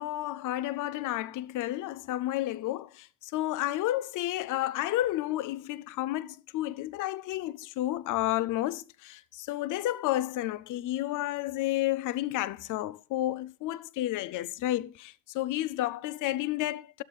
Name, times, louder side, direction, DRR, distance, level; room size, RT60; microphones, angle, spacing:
voice 1, 0.0-17.0, left 15 dB, 85° left, 0.5 m, -31 dB
12.5 x 11.5 x 2.4 m
cardioid pair, 90°, 30 cm